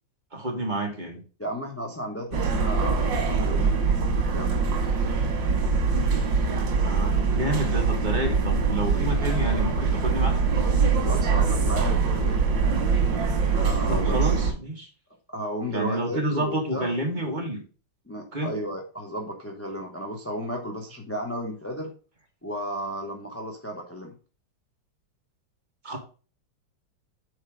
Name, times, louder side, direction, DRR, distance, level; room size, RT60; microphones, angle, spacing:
voice 1, 0.3-1.2 6.8-10.4 13.9-14.9 15.7-17.6 18.3-18.5 25.8-26.0, right 1 dB, 25° right, 0 dB, 1.8 m, -29 dB
voice 2, 1.4-4.9 11.0-12.4 13.4-14.4 15.3-16.9 18.1-21.9 22.4-24.1, equal, 15° left, 0 dB, 0.6 m, -34 dB
sound 1, 2.3-14.5, right 5 dB, 85° right, 2.1 m, -23 dB
6.4 x 4.6 x 4.9 m, 0.36 s
omnidirectional pair, 2.0 m